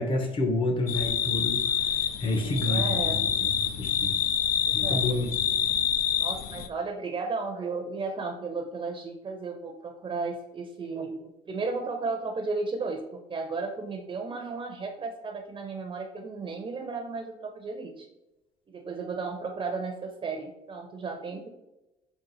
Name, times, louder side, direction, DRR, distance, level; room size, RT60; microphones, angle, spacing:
voice 1, 0.0-1.8 2.2-4.2 4.7-5.3, left 2 dB, 30° left, 3 dB, 0.8 m, -29 dB
sound 1, 0.9-6.7, left 9 dB, 60° left, 0.4 m, -27 dB
voice 2, 2.4-3.3 4.6-5.1 6.2-18.0 18.7-21.5, right 4 dB, 30° right, 3 dB, 0.6 m, -34 dB
3.9 x 2.4 x 4.0 m, 0.95 s
cardioid pair, 110°, 17 cm